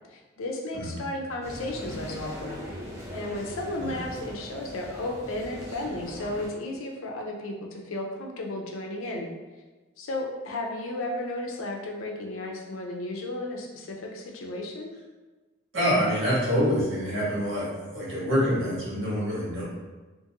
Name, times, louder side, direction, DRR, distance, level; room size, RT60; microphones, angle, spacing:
voice 1, 0.1-2.6 3.1-9.3 10.0-14.9, left 1 dB, 75° left, 1 dB, 0.5 m, -34 dB
sound 1, 1.4-6.5, equal, 15° right, 0.6 m, -40 dB
voice 2, 15.7-19.6, equal, 70° right, -8 dB, 1.3 m, -26 dB
2.5 x 2.5 x 2.7 m, 1.2 s
head